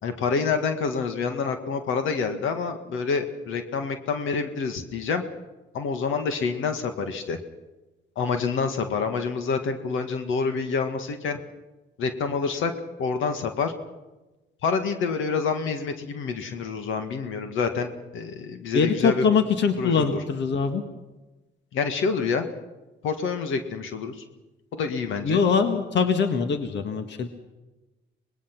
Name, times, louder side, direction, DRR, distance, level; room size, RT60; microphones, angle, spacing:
voice 1, 0.0-5.2 5.7-7.4 8.2-11.4 12.0-12.7 13.0-13.7 14.6-19.2 19.8-20.2 21.7-22.5 23.0-24.2 24.7-25.4, left 5 dB, 80° left, 7 dB, 1.9 m, -27 dB
voice 2, 18.7-20.8 25.2-27.3, left 5 dB, 65° left, 7 dB, 1.7 m, -23 dB
24.5 x 20.0 x 6.1 m, 1.1 s
cardioid pair, 90°, 20 cm